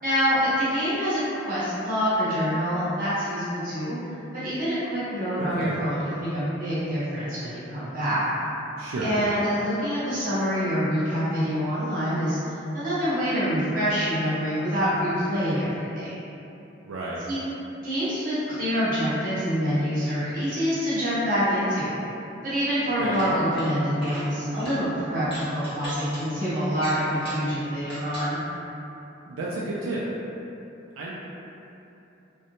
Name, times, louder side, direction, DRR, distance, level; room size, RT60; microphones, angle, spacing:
voice 1, 0.0-4.0 4.4-8.2 9.0-16.1 17.3-17.4 17.8-22.0 22.4-28.4, equal, 45° right, -12 dB, 1.0 m, -26 dB
voice 2, 5.4-5.7 8.8-9.1 16.8-17.2 23.0-23.1 29.3-30.0 31.0-31.1, right 2 dB, 80° right, -6 dB, 0.3 m, -31 dB
sound 1, 23.0-23.7 23.9-24.3 24.6-24.8 25.2-26.2 26.7-27.5 27.8-28.3, equal, 25° left, 0.8 m, -39 dB
2.6 x 2.1 x 2.8 m, 2.9 s
head